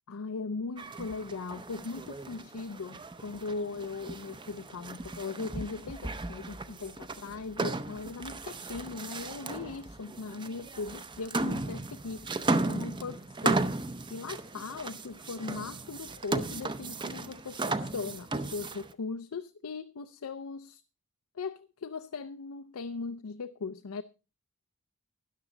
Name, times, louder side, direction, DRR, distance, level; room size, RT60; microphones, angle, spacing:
voice 1, 0.1-20.8 21.3-24.0, left 4 dB, 90° left, 0.5 m, -39 dB
sound 1, 0.8-18.9, right 2 dB, 20° right, 0.6 m, -35 dB
13.0 x 10.5 x 3.9 m
head